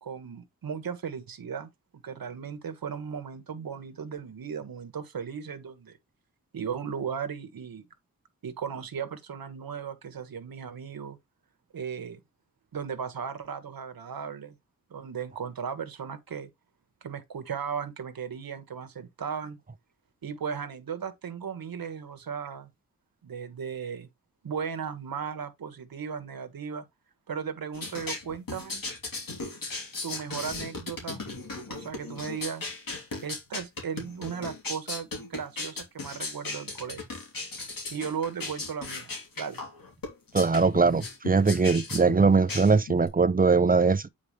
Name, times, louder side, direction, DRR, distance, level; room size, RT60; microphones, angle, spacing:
voice 1, 0.0-6.0 6.5-7.9 8.4-11.2 11.7-12.2 12.7-14.5 14.9-16.5 17.0-19.6 20.2-22.7 23.2-24.1 24.4-26.8 27.3-28.8 30.0-31.2 31.7-32.6 33.2-37.1 37.9-39.6, right 7 dB, 85° right, 1.4 m, -36 dB
sound 1, 27.7-43.1, left 3 dB, 75° left, 3.2 m, -37 dB
voice 2, 40.3-44.1, right 4 dB, 25° right, 0.6 m, -21 dB
8.9 x 4.7 x 3.2 m
wide cardioid pair, 105°, 34 cm